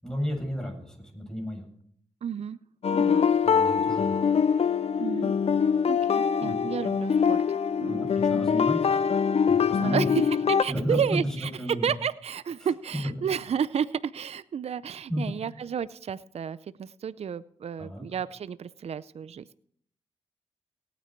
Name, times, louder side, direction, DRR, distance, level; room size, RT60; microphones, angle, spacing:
voice 1, 0.0-1.6 3.4-4.1 6.4-6.7 7.8-9.0 9.5-10.1 10.7-11.9 12.6-13.1 15.1-15.4 17.8-18.1, equal, 5° left, 2 dB, 7.3 m, -32 dB
voice 2, 2.2-2.6 2.9-3.3 3.6-3.8 5.0-5.3 5.9-8.1 8.5-8.6 9.8-11.5 11.8-19.6, right 7 dB, 60° right, 17 dB, 0.5 m, -32 dB
sound 1, 2.8-10.6, left 6 dB, 60° left, 0.6 m, -24 dB
17.5 x 9.3 x 4.5 m, 0.64 s
supercardioid pair, 40°, 12 cm